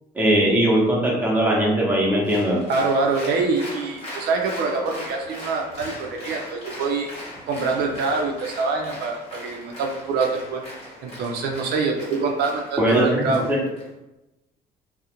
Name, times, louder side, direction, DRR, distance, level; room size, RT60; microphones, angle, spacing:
voice 1, 0.1-2.6 12.8-13.6, right 1 dB, 10° right, -3 dB, 0.7 m, -20 dB
Applause, 2.2-13.9, equal, 40° left, 1.1 m, -39 dB
voice 2, 2.7-7.1 7.5-10.6 11.0-13.4, right 4 dB, 70° right, 2 dB, 0.4 m, -25 dB
2.4 x 2.0 x 2.8 m, 0.99 s
cardioid pair, 110°, 17 cm